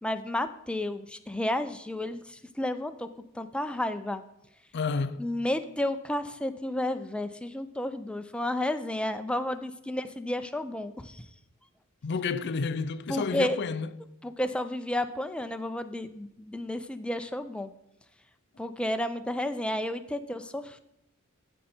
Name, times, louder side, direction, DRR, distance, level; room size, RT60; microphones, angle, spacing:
voice 1, 0.0-3.1 3.3-4.2 5.2-11.2 13.1-13.6 14.2-17.7 18.6-20.8, left 1 dB, 5° left, 0.5 m, -32 dB
voice 2, 4.7-5.3 12.0-13.9, left 4 dB, 55° left, 0.5 m, -30 dB
15.0 x 5.5 x 4.4 m
head